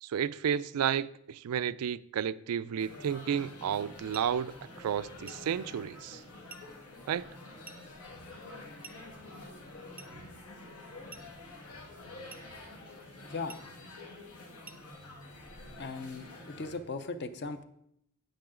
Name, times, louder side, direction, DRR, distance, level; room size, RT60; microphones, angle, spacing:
voice 1, 0.0-6.2 7.1-7.2, right 8 dB, 90° right, 0.3 m, -32 dB
sound 1, 2.8-16.8, left 2 dB, 85° left, 1.8 m, -48 dB
sound 2, 4.1-4.4 5.3-5.5 6.5-6.7 7.6-7.9 8.8-9.1 10.0-10.2 11.1-11.4 12.3-12.5 13.5-13.7 14.6-14.9, right 5 dB, 10° right, 0.5 m, -51 dB
voice 2, 15.8-17.6, left 3 dB, 50° left, 0.6 m, -38 dB
9.0 x 8.6 x 3.7 m
head